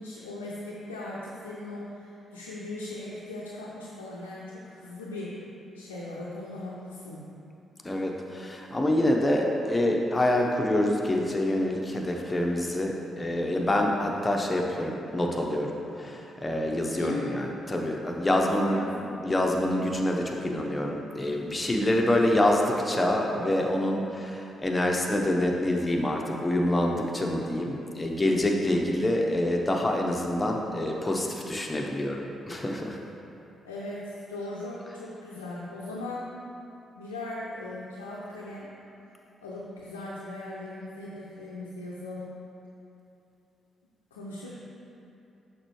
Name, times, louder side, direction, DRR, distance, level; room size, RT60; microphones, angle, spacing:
voice 1, 0.0-5.4 5.7-7.2 16.9-17.4 18.3-19.2 33.6-36.3 37.0-38.7 39.4-42.3 44.1-44.5, left 2 dB, 90° left, -7 dB, 0.5 m, -38 dB
voice 2, 7.8-18.8 19.2-33.0, left 1 dB, 25° left, 0 dB, 0.9 m, -26 dB
6.5 x 5.3 x 3.1 m, 2.9 s
hypercardioid pair, 40°, 0 cm